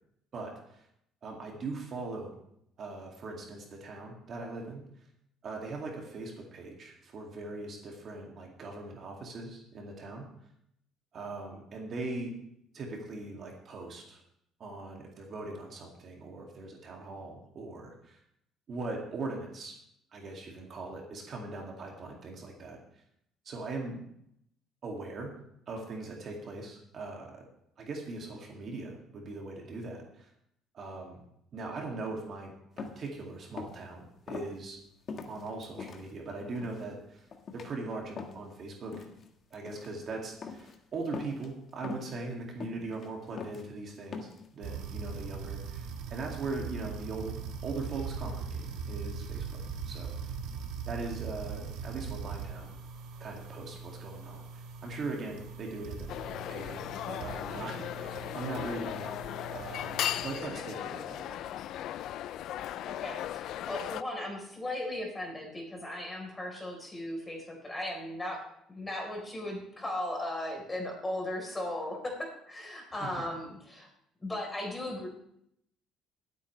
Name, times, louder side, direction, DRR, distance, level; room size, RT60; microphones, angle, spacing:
voice 1, 0.3-0.9 1.2-2.3 2.8-4.9 5.4-10.3 11.1-12.4 12.7-14.2 14.6-18.2 18.7-19.8 20.1-23.0 23.4-24.0 24.8-25.3 25.7-27.4 27.8-30.3 30.7-31.2 31.5-34.8 35.3-37.3 37.5-39.0 39.5-47.4 47.6-50.4 50.9-52.7 53.2-56.8 57.1-59.2 59.5-61.5 73.0-73.1, right 3 dB, 45° right, 0 dB, 2.4 m, -40 dB
sound 1, 32.8-33.1 33.5-33.8 34.3-34.5 35.1-36.0 36.5-36.9 37.3-37.7 38.2-38.5 38.9-39.3 39.5-39.9 40.4-40.8 41.1-41.5 41.8-42.2 42.6-43.1 43.4-43.6 44.1-44.5, left 5 dB, 40° left, 1.5 m, -41 dB
sound 2, 44.6-60.4, right 5 dB, 75° right, 1.6 m, -41 dB
sound 3, 56.1-64.0, left 12 dB, 65° left, 0.4 m, -37 dB
voice 2, 62.8-68.4 68.7-73.9 74.2-75.1, left 1 dB, 15° left, 1 dB, 4.0 m, -37 dB
22.0 x 8.5 x 3.3 m, 0.74 s
cardioid pair, 130°, 0 cm